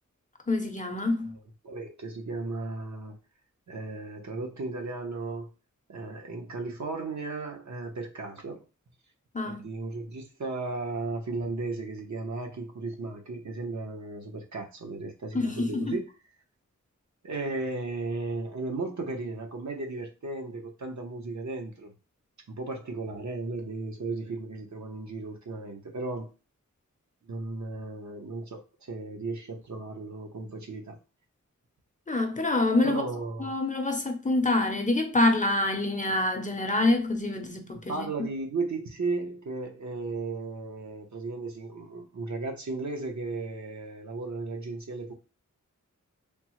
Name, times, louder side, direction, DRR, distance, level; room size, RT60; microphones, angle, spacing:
voice 1, 0.5-1.3 9.3-9.7 15.3-16.0 32.1-33.0 33.4-38.0, left 2 dB, 25° left, 0.5 m, -26 dB
voice 2, 1.6-3.2 3.7-5.5 5.9-8.6 9.4-16.1 17.2-21.9 22.5-26.3 27.2-31.0 32.8-33.6 37.9-45.1, right 3 dB, 65° right, 0.8 m, -35 dB
3.4 x 2.0 x 3.0 m
wide cardioid pair, 80°, 30 cm